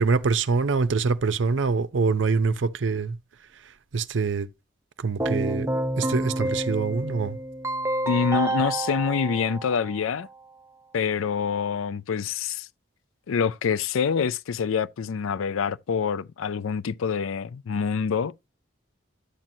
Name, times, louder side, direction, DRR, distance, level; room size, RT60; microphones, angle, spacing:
voice 1, 0.0-3.2 3.9-4.5 5.0-7.4, right 4 dB, 70° right, 0.6 m, -25 dB
Keyboard (musical), 5.2-10.2, right 1 dB, 15° right, 0.5 m, -29 dB
voice 2, 8.1-10.3 10.9-12.7 13.3-18.5, left 6 dB, 90° left, 0.4 m, -26 dB
11.5 x 7.4 x 2.6 m
head